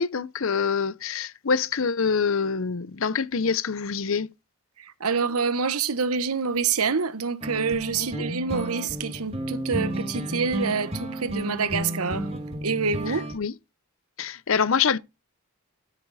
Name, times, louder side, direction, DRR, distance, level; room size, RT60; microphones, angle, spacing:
voice 1, 0.0-4.3 8.0-8.2 13.1-13.5 14.2-15.0, left 5 dB, 60° left, 0.7 m, -25 dB
voice 2, 4.8-12.3 12.6-13.2, right 5 dB, 80° right, 1.1 m, -27 dB
sound 1, 7.4-13.4, right 1 dB, 25° right, 2.3 m, -32 dB
13.0 x 8.3 x 4.1 m
head